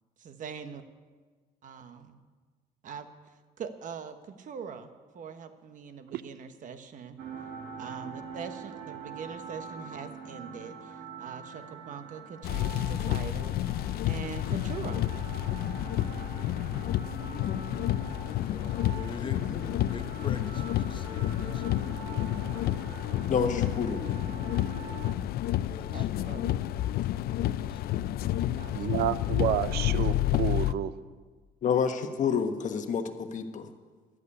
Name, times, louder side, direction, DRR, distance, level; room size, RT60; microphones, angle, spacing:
voice 1, 0.2-0.8 1.6-2.2 2.8-3.1 3.6-4.9 5.1-7.2 7.8-13.6 14.0-15.1 25.9-26.6 28.5-28.7 29.1-29.2, right 6 dB, 50° right, 9 dB, 1.1 m, -42 dB
sound 1, 7.2-25.1, right 6 dB, 90° right, 1.5 m, -44 dB
sound 2, 12.4-30.7, left 13 dB, 65° left, 0.5 m, -30 dB
voice 2, 18.5-19.4 19.7-22.2 25.5-26.1 26.3-26.9 27.3-28.8, left 5 dB, 30° left, 8 dB, 1.0 m, -44 dB
voice 3, 23.3-24.1 31.6-33.7, left 6 dB, 50° left, 7 dB, 1.2 m, -29 dB
voice 4, 28.7-30.9, right 11 dB, 70° right, 15 dB, 0.7 m, -30 dB
12.5 x 8.2 x 9.8 m, 1.4 s
cardioid pair, 110°, 17 cm